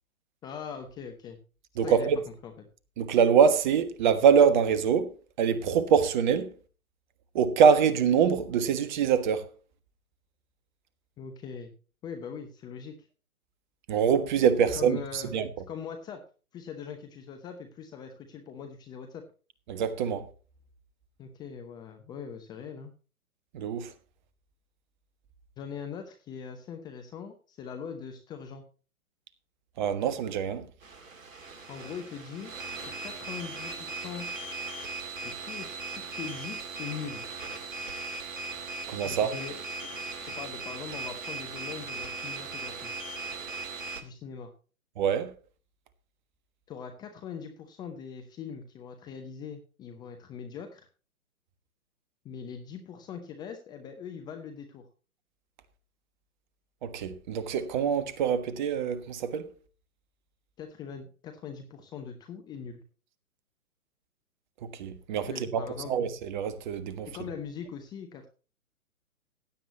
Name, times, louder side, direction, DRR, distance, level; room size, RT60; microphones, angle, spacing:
voice 1, 0.4-1.4 1.8-2.1 2.4-2.5 11.2-11.7 12.0-13.1 14.7-15.3 15.7-16.2 16.5-19.2 21.2-22.9 25.6-28.6 31.7-32.5 32.8-34.3 35.2-37.3 39.0-39.6 40.4-42.9 44.0-44.5 46.7-50.9 52.2-54.9 60.6-62.8 65.3-65.9 67.1-68.3, left 7 dB, 10° left, 0.8 m, -41 dB
voice 2, 1.8-2.2 3.0-5.1 5.4-6.5 7.3-9.5 13.9-15.5 19.7-20.2 23.5-23.9 29.8-30.6 38.9-39.3 45.0-45.3 56.8-59.5 64.7-67.1, right 7 dB, 30° right, 1.4 m, -24 dB
sound 1, 30.8-44.0, right 3 dB, 60° right, 2.8 m, -38 dB
16.0 x 9.8 x 3.0 m
figure-of-eight pair, 130°, 43 cm